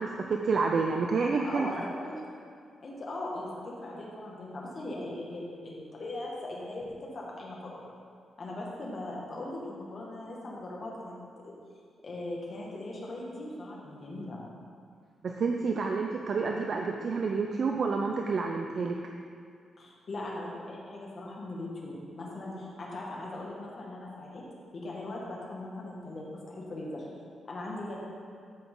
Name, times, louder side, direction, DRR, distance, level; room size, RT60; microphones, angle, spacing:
voice 1, 0.0-1.7 15.2-19.0, right 4 dB, 45° right, 2 dB, 0.5 m, -29 dB
voice 2, 1.5-2.2 2.8-7.9 8.4-11.1 11.4-11.5 12.0-14.4 19.8-24.4 24.7-27.2 27.5-28.0, left 2 dB, 35° left, -4 dB, 1.9 m, -39 dB
13.5 x 6.1 x 3.8 m, 2.3 s
wide cardioid pair, 175°, 0 cm